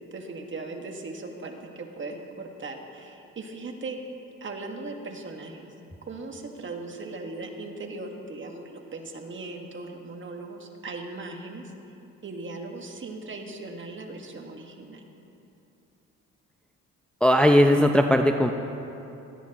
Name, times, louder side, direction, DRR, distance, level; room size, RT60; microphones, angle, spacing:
voice 1, 0.0-4.0 4.4-5.7 6.1-11.7 12.2-15.1, right 3 dB, 40° right, 2 dB, 1.6 m, -38 dB
voice 2, 17.2-18.5, equal, 5° left, 4 dB, 0.6 m, -18 dB
19.0 x 13.0 x 2.9 m, 2.9 s
cardioid pair, 90°, 30 cm